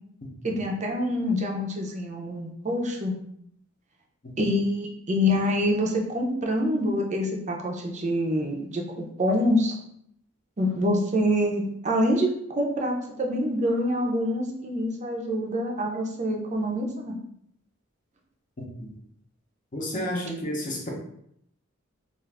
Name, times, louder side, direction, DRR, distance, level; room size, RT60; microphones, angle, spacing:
voice 1, 0.4-3.1 4.4-9.8 10.6-17.1, equal, 35° right, 1 dB, 0.5 m, -26 dB
voice 2, 18.6-18.9 19.7-20.9, equal, 40° left, -2 dB, 0.7 m, -31 dB
2.4 x 2.4 x 3.3 m, 0.72 s
head